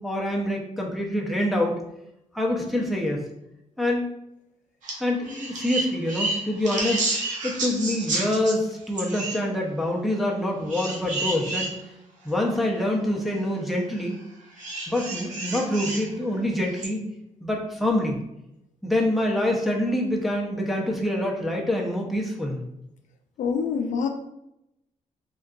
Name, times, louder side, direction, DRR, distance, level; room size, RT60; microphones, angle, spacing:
voice 1, 0.0-1.7 2.3-3.2 3.8-4.0 5.0-7.0 7.4-11.7 12.3-14.2 14.9-17.0 17.4-18.2 18.8-22.6, left 1 dB, ahead, -2 dB, 0.5 m, -26 dB
sound 1, 4.8-5.0 5.2-8.5 9.0-9.4 10.7-11.7 12.4-12.5 14.6-16.1 16.8-16.9, right 2 dB, 80° right, 0.8 m, -30 dB
voice 2, 23.4-24.1, left 6 dB, 75° left, 5 dB, 0.4 m, -25 dB
3.7 x 2.3 x 2.3 m, 0.84 s
wide cardioid pair, 140°, 13 cm